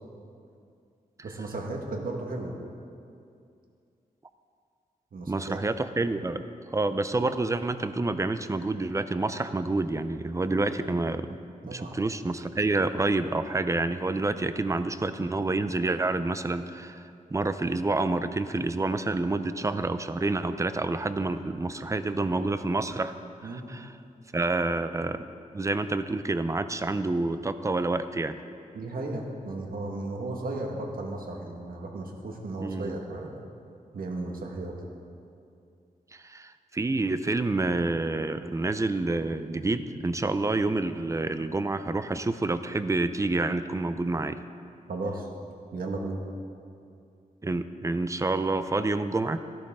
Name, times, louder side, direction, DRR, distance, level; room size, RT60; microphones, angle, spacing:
voice 1, 1.2-2.5 5.1-5.6 11.7-11.9 23.4-23.7 28.7-33.4 33.9-34.7 44.9-45.3 45.7-46.2, right 2 dB, 70° right, 1 dB, 1.7 m, -35 dB
voice 2, 5.3-6.5 6.7-11.4 11.6-23.1 23.4-23.9 24.3-25.3 25.5-28.4 32.6-33.0 36.1-44.4 47.4-49.4, right 2 dB, 20° right, 11 dB, 0.5 m, -28 dB
14.0 x 12.0 x 3.7 m, 2.4 s
wide cardioid pair, 100°, 15 cm